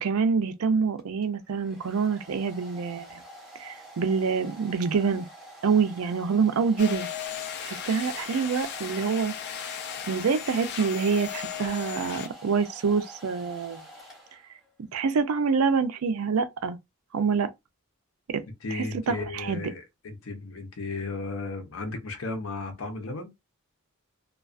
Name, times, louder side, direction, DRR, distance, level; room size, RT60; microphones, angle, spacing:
voice 1, 0.0-3.2 3.6-5.3 5.6-7.1 7.6-9.6 10.1-13.8 14.9-16.8 17.1-17.5 18.3-18.4 18.7-19.6, right 5 dB, 90° right, 0.5 m, -26 dB
Domestic sounds home sounds, 1.0-14.7, equal, 5° right, 0.7 m, -47 dB
sound 1, 6.8-12.3, left 9 dB, 50° left, 0.4 m, -36 dB
voice 2, 18.6-23.3, left 3 dB, 75° left, 0.7 m, -35 dB
2.4 x 2.3 x 2.4 m
head